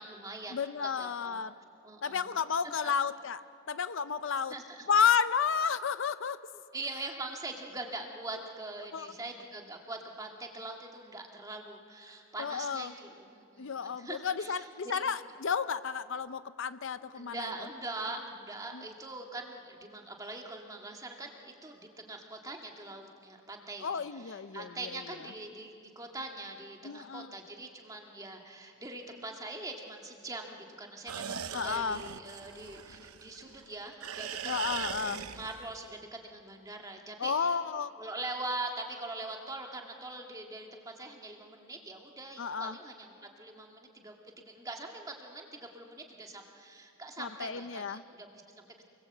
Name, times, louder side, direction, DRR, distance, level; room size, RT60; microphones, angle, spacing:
voice 1, 0.0-0.6 1.0-1.4 1.8-2.3 2.8-2.9 4.5-4.9 6.5-15.0 17.1-37.6 38.0-48.8, right 2 dB, 15° right, 2 dB, 2.1 m, -43 dB
voice 2, 0.5-1.5 2.0-3.4 3.7-4.5 4.9-6.4 8.9-9.1 12.4-12.9 13.6-17.5 18.7-18.9 23.8-25.0 26.8-27.3 31.5-32.0 34.4-35.2 37.2-37.9 42.4-42.8 47.2-48.0, left 6 dB, 60° left, 13 dB, 0.6 m, -31 dB
sound 1, 31.1-33.6 34.0-35.8, right 8 dB, 85° right, 0.9 m, -40 dB
28.5 x 21.0 x 8.0 m, 2.6 s
head